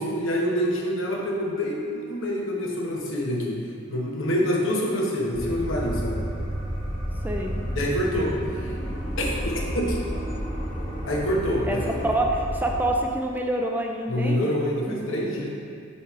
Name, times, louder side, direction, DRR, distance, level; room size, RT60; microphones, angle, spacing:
voice 1, 0.0-6.2 7.7-8.7 9.2-10.2 11.1-12.1 14.1-15.5, equal, 85° left, -2 dB, 1.0 m, -26 dB
sound 1, 5.3-12.9, equal, 20° left, 1.3 m, -31 dB
voice 2, 7.2-7.5 11.7-11.8 12.0-14.5 14.9-15.0, right 1 dB, 10° right, 1 dB, 0.3 m, -26 dB
7.2 x 3.1 x 4.8 m, 2.3 s
head